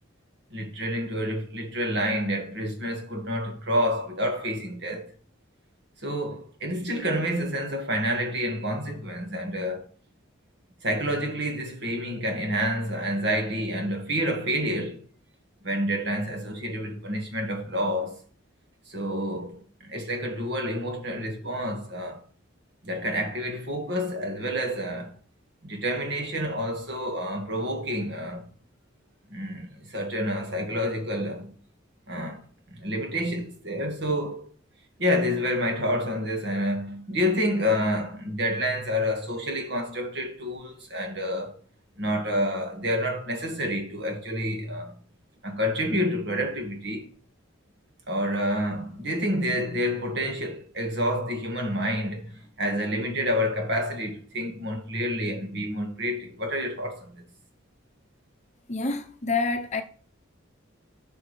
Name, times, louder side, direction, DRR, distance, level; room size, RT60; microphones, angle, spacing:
voice 1, 0.5-5.1 6.0-9.9 10.8-15.0 15.6-18.2 18.9-22.2 22.8-25.1 25.6-28.5 29.3-31.5 32.1-32.4 32.7-34.5 35.0-41.6 42.0-45.0 45.4-47.1 48.1-57.2, equal, 55° right, 1.8 m, -28 dB
voice 2, 58.7-59.8, left 3 dB, 35° left, 0.8 m, -27 dB
11.5 x 6.2 x 3.3 m
head